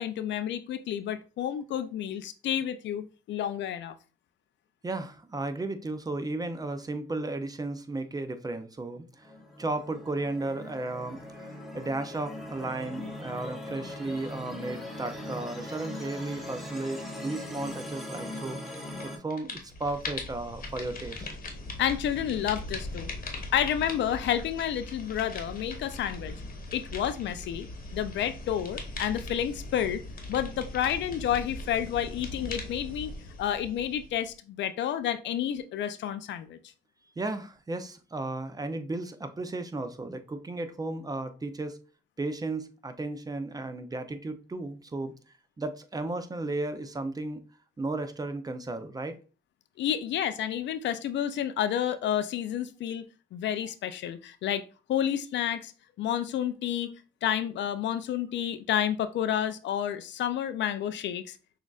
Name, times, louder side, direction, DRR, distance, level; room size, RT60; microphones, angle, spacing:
voice 1, 0.0-3.9 21.8-23.1 23.5-26.3 26.7-30.0 30.3-33.1 33.4-36.6 49.8-53.1 53.3-54.6 54.9-55.7 56.0-56.9 57.2-61.6, left 10 dB, 65° left, 0.4 m, -30 dB
voice 2, 4.8-9.3 9.6-11.2 11.5-21.3 37.2-41.8 42.2-45.1 45.6-47.4 47.8-49.2, right 2 dB, 20° right, 0.5 m, -34 dB
sound 1, 9.2-19.2, left 1 dB, ahead, 0.9 m, -40 dB
sound 2, 18.7-19.0 19.3-34.3, left 2 dB, 45° left, 1.0 m, -40 dB
6.2 x 2.4 x 2.3 m
cardioid pair, 90°, 20 cm